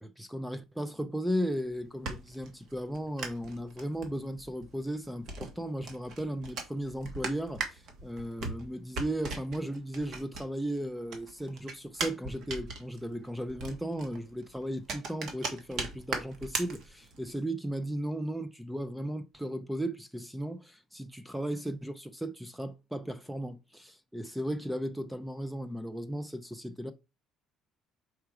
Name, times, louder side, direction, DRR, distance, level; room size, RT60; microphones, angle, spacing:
voice 1, 0.0-26.9, right 1 dB, 5° right, 0.4 m, -36 dB
sound 1, 1.6-10.8 11.1-17.3, right 3 dB, 55° right, 1.6 m, -39 dB
4.7 x 4.5 x 4.8 m
cardioid pair, 155°, 0 cm